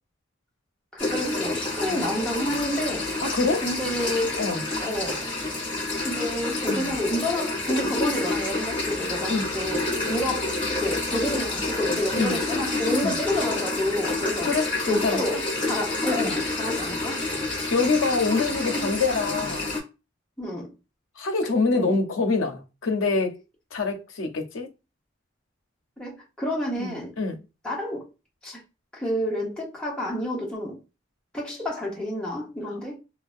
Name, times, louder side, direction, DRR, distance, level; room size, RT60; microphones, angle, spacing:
voice 1, 0.9-3.2 3.6-4.4 4.8-5.3 5.7-14.5 14.9-17.2 20.4-20.7 21.7-22.0 26.0-27.1 27.6-28.0 28.4-28.6 28.9-30.8 31.3-33.0, left 1 dB, 5° left, 0.7 m, -29 dB
sound 1, 1.0-19.8, left 2 dB, 25° left, 1.0 m, -28 dB
voice 2, 3.3-3.7 4.4-4.6 6.7-6.9 9.3-9.5 12.1-12.4 13.0-13.1 14.4-15.4 16.2-16.3 17.7-19.7 21.2-23.4 23.7-24.7 26.8-27.4 32.7-32.8, left 3 dB, 80° left, 0.6 m, -26 dB
2.6 x 2.1 x 2.4 m
head